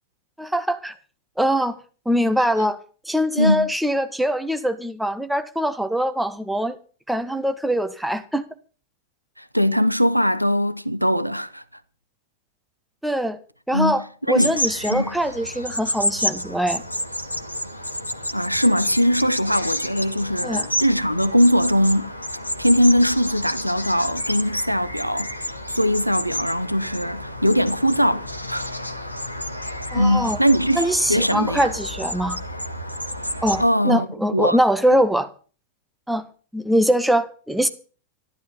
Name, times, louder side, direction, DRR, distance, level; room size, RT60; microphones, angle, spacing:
voice 1, 0.4-0.9 1.4-1.8 2.0-2.8 3.0-6.8 7.1-8.4 13.0-13.4 13.7-16.8 20.4-20.7 29.9-30.4 30.7-32.4 33.4-35.3 36.1-36.3 36.5-37.7, equal, 5° right, 1.5 m, -22 dB
voice 2, 3.4-3.7 9.4-11.6 13.7-14.6 14.9-15.1 18.3-22.1 22.6-28.7 29.9-31.7 33.6-34.6, equal, 90° right, 0.8 m, -21 dB
sound 1, 14.4-33.6, left 1 dB, 85° left, 1.3 m, -30 dB
13.5 x 12.0 x 5.6 m
figure-of-eight pair, 90°, 0 cm